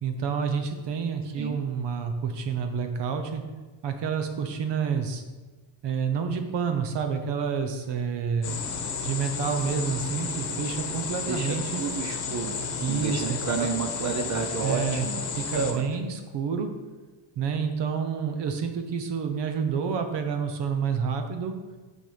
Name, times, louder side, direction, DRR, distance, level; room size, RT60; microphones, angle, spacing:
voice 1, 0.0-3.4 3.8-5.2 5.8-8.6 9.0-11.8 12.8-13.7 14.6-15.1 15.4-16.7 17.4-21.5, right 6 dB, 60° right, 7 dB, 1.0 m, -29 dB
sound 1, 8.4-15.7, left 5 dB, 40° left, 1.1 m, -32 dB
voice 2, 11.2-12.5 12.8-15.8, right 5 dB, 35° right, 6 dB, 0.6 m, -31 dB
6.6 x 6.2 x 5.1 m, 1.3 s
cardioid pair, 150°, 47 cm